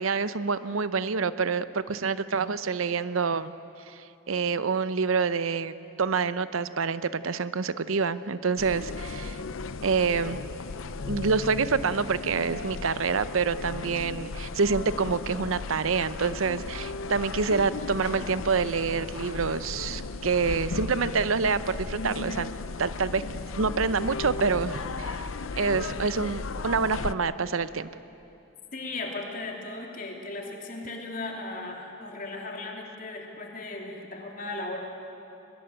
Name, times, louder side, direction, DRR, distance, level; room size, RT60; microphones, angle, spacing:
voice 1, 0.0-3.5 3.9-9.4 9.8-10.4 11.1-22.5 22.8-23.2 23.6-25.2 25.6-27.9, right 5 dB, 90° right, 14 dB, 0.8 m, -27 dB
sound 1, 8.6-27.1, left 4 dB, 85° left, 0.6 m, -35 dB
voice 2, 28.7-34.8, left 2 dB, 40° left, 1 dB, 3.1 m, -36 dB
22.5 x 21.0 x 8.9 m, 2.8 s
head